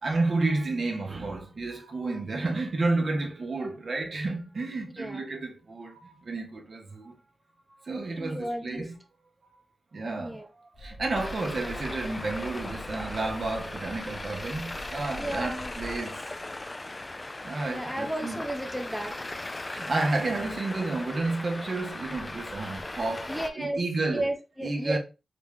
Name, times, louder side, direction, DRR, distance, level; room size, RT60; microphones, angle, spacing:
voice 1, 0.0-7.1 7.8-9.0 9.9-10.4 10.8-16.2 17.4-18.4 19.7-24.3 24.6-25.0, right 3 dB, 55° right, 0.9 m, -31 dB
voice 2, 8.2-8.9 10.2-10.5 15.2-15.7 17.7-19.2 23.3-23.8 24.1-25.0, right 1 dB, 5° left, 0.8 m, -33 dB
sound 1, 10.7-16.0, left 1 dB, 70° left, 1.0 m, -44 dB
Traffic noise roadway noise, 11.1-23.5, left 2 dB, 30° left, 0.4 m, -38 dB
3.9 x 2.3 x 3.6 m
cardioid pair, 60°, 0 cm